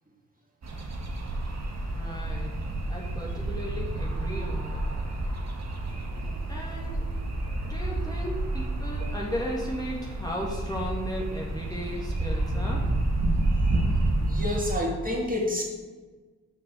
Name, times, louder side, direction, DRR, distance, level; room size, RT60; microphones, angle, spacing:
sound 1, 0.6-14.8, right 2 dB, 55° right, 1.6 m, -29 dB
voice 1, 1.8-2.5 2.9-4.9 6.5-7.1 7.6-12.9, equal, 10° left, -4 dB, 1.9 m, -35 dB
voice 2, 13.5-13.9 14.2-15.6, left 1 dB, 25° right, -2 dB, 2.5 m, -29 dB
6.1 x 6.0 x 6.2 m, 1.3 s
cardioid pair, 55°, 33 cm